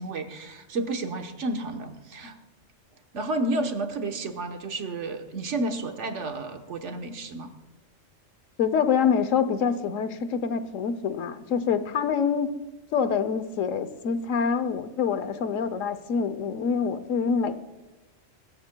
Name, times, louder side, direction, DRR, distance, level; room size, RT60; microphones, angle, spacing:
voice 1, 0.0-2.3 3.1-7.5, right 2 dB, 65° right, 6 dB, 1.4 m, -31 dB
voice 2, 8.6-12.6 12.9-17.5, left 6 dB, 80° left, 12 dB, 1.2 m, -26 dB
24.0 x 13.5 x 2.2 m, 1.1 s
omnidirectional pair, 1.3 m